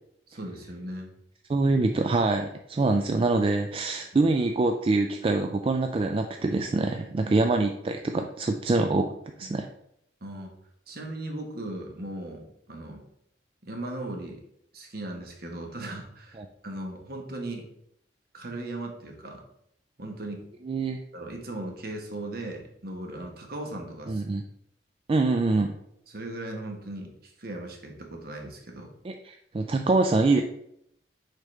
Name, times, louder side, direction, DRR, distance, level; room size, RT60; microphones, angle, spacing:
voice 1, 0.3-1.1 4.1-4.2 7.3-7.4 9.4-9.6 10.2-10.5 10.9-13.0 13.6-14.4 14.7-17.7 18.3-19.4 20.0-20.5 21.1-24.3 26.1-28.9, right 1 dB, 60° right, 2 dB, 1.2 m, -38 dB
voice 2, 1.5-9.1 9.4-9.7 16.4-16.5 20.7-21.0 24.1-24.4 25.1-25.7 29.0-30.4, right 3 dB, 30° right, 5 dB, 0.3 m, -25 dB
6.5 x 4.9 x 3.2 m, 0.76 s
head